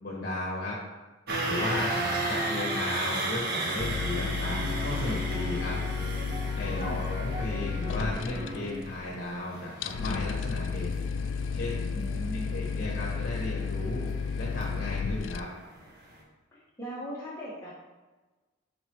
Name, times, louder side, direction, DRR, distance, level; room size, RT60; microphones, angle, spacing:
voice 1, 0.0-0.8 1.5-1.9 2.3-5.8 6.6-11.0 11.5-11.9 12.5-14.1 14.3-15.5, left 2 dB, 55° left, -3 dB, 1.4 m, -35 dB
sound 1, 1.3-15.3 15.7-15.9 16.2-16.3, right 2 dB, 55° right, 1.4 m, -35 dB
sound 2, 3.8-15.4, left 5 dB, 85° left, 0.3 m, -32 dB
sound 3, 4.5-8.8, equal, 25° right, 1.2 m, -40 dB
voice 2, 6.7-7.1 11.9-12.5 16.5-17.7, equal, 15° left, -9 dB, 1.6 m, -39 dB
11.0 x 4.4 x 3.1 m, 1.2 s
head